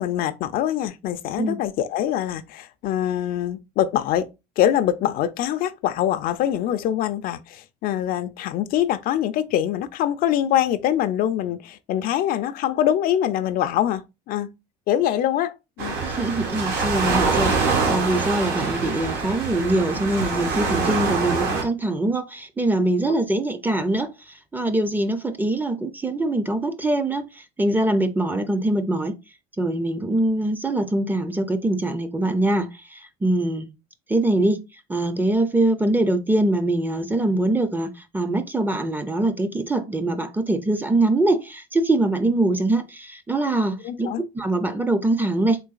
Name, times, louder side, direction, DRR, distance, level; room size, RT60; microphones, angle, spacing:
voice 1, 0.0-4.3 4.6-14.5 14.9-16.0 43.8-44.2, left 11 dB, 55° left, 0.4 m, -24 dB
Waves surf, 15.8-21.6, right 4 dB, 70° right, 1.3 m, -24 dB
voice 2, 16.0-29.2 29.6-33.7 34.1-34.6 34.9-44.1 44.3-45.6, right 2 dB, 10° right, 0.4 m, -23 dB
3.8 x 3.1 x 2.3 m
cardioid pair, 110°, 17 cm